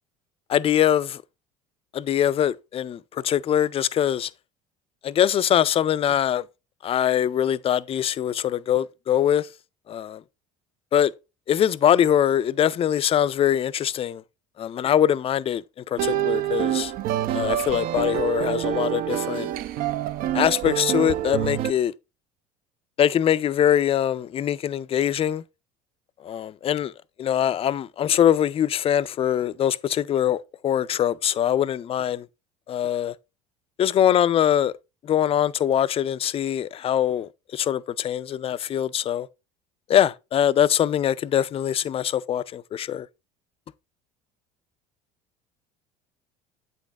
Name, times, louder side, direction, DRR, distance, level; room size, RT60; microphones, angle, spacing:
voice 1, 0.5-1.2 1.9-4.3 5.0-6.4 6.8-9.5 9.9-10.2 10.9-11.1 11.5-14.2 14.6-16.9 17.3-19.5 20.3-21.9 23.0-25.4 26.2-26.9 27.2-32.3 32.7-33.1 33.8-34.7 35.0-39.3 39.9-43.1, left 10 dB, 30° left, 0.3 m, -23 dB
sound 1, 16.0-21.7, right 12 dB, 50° right, 0.4 m, -26 dB
8.0 x 4.1 x 3.4 m
hypercardioid pair, 75°, 19 cm